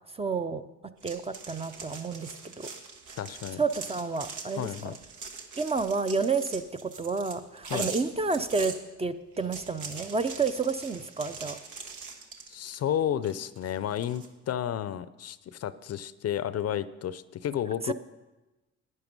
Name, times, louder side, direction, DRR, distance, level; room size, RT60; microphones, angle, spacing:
voice 1, 0.1-0.7 1.0-2.7 3.6-4.7 5.6-11.6 17.8-17.9, right 4 dB, 20° right, 10 dB, 0.5 m, -30 dB
sound 1, 1.0-8.8 9.3-12.9 13.2-14.3, right 5 dB, 85° right, 1.3 m, -42 dB
voice 2, 3.2-3.6 4.5-4.9 7.7-7.9 12.5-17.9, left 10 dB, 55° left, 15 dB, 0.5 m, -32 dB
11.0 x 9.7 x 5.3 m, 1.1 s
cardioid pair, 90°, 30 cm